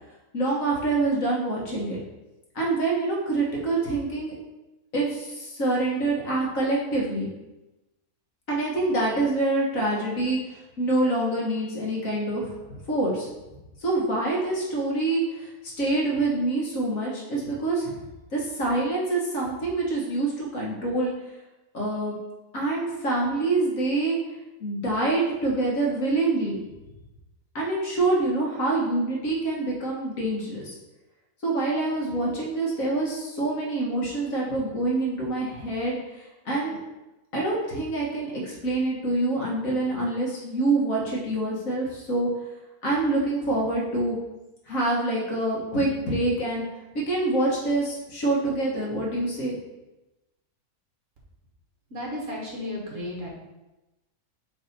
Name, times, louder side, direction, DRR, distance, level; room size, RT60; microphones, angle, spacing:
voice 1, 0.3-2.0 2.6-4.3 4.9-7.3 8.5-10.4 10.8-13.3 13.8-15.5 15.8-18.0 18.3-21.1 21.7-22.2 22.5-24.2 24.6-26.6 27.6-30.8 31.4-36.0 36.5-36.8 37.3-42.3 42.8-44.2 44.7-46.6 47.0-49.6, right 2 dB, 60° left, -3 dB, 1.8 m, -26 dB
voice 2, 51.9-53.3, left 1 dB, 55° right, -3 dB, 1.8 m, -33 dB
7.1 x 3.4 x 4.2 m, 1.0 s
omnidirectional pair, 1.6 m